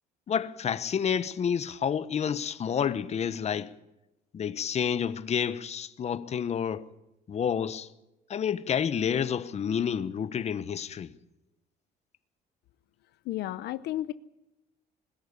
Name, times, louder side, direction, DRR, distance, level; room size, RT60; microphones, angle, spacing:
voice 1, 0.3-3.7 4.3-6.9 7.3-7.9 8.3-11.1, left 7 dB, 40° left, 1.1 m, -29 dB
voice 2, 13.3-14.1, left 14 dB, 75° left, 0.8 m, -32 dB
21.0 x 14.0 x 9.8 m
cardioid pair, 110°, 17 cm